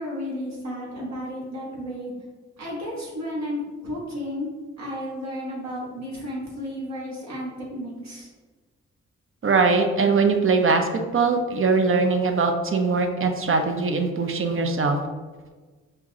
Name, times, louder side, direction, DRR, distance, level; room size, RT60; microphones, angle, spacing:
voice 1, 0.0-2.1 2.6-8.3, equal, 60° right, -5 dB, 1.2 m, -33 dB
voice 2, 9.4-10.9 11.1-15.0, right 4 dB, 45° right, 5 dB, 0.5 m, -21 dB
5.6 x 2.0 x 2.7 m, 1.4 s
supercardioid pair, 50°, 31 cm